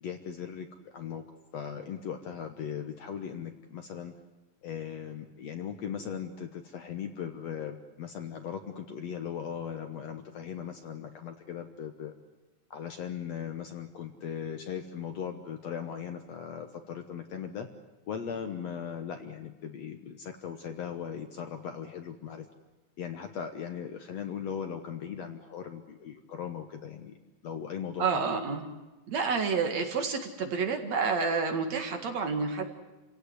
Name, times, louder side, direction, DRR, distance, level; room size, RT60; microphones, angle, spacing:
voice 1, 0.0-1.2 1.5-4.1 4.6-12.1 12.7-17.7 18.1-22.5 23.0-27.2 27.4-28.2, left 8 dB, 60° left, 7 dB, 1.9 m, -38 dB
voice 2, 28.0-28.7 29.1-32.7, right 5 dB, 55° right, 5 dB, 3.0 m, -29 dB
29.0 x 17.0 x 9.7 m, 1.1 s
omnidirectional pair, 4.0 m